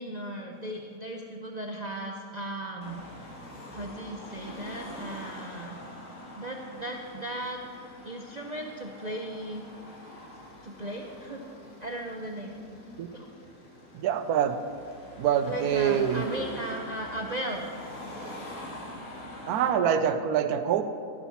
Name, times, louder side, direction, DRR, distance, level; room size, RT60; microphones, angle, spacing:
voice 1, 0.0-3.3 3.7-5.8 6.4-7.6 8.0-9.6 10.6-11.4 11.8-12.5 13.1-13.3 15.4-17.7, right 1 dB, 55° right, 1 dB, 0.4 m, -36 dB
Car passing by / Traffic noise roadway noise / Engine, 2.8-19.7, left 1 dB, 50° left, 2.0 m, -44 dB
voice 2, 13.9-14.6 15.2-16.2 19.5-20.8, right 8 dB, 75° right, 10 dB, 1.1 m, -25 dB
12.0 x 7.0 x 5.8 m, 2.5 s
omnidirectional pair, 1.7 m